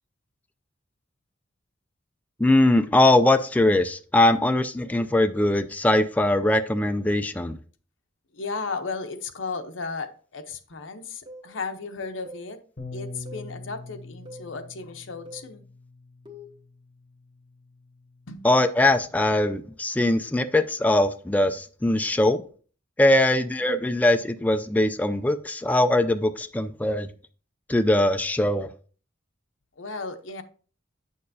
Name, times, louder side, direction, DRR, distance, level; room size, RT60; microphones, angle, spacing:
voice 1, 2.4-7.6 18.4-22.4 23.0-27.1 27.7-28.7, left 1 dB, 10° left, 8 dB, 0.3 m, -21 dB
voice 2, 8.3-12.6 12.9-15.6 18.3-18.5 29.8-30.4, left 4 dB, 85° left, 7 dB, 0.8 m, -35 dB
sound 1, 11.3-11.5 12.3-12.5 13.3-13.5 14.3-14.5 15.3-15.5 16.3-16.6, equal, 25° right, 1.1 m, -43 dB
Bass guitar, 12.8-19.0, left 3 dB, 40° left, 0.8 m, -44 dB
8.4 x 6.5 x 2.7 m, 0.41 s
head